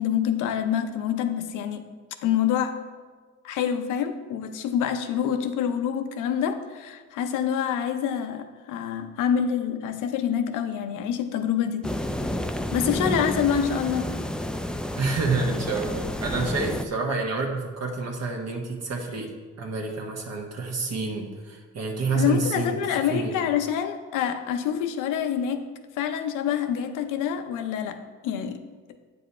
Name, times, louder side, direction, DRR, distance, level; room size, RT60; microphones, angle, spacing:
voice 1, 0.0-1.8 2.2-2.8 3.4-11.9 12.7-14.1 22.1-25.6 26.0-28.0 28.2-28.6, left 8 dB, 90° left, 8 dB, 0.6 m, -26 dB
sound 1, 11.8-16.9, left 1 dB, 5° left, 0.3 m, -30 dB
voice 2, 14.9-19.3 19.6-23.4, right 3 dB, 60° right, 0 dB, 1.3 m, -28 dB
8.6 x 5.4 x 4.3 m, 1.4 s
cardioid pair, 90°, 30 cm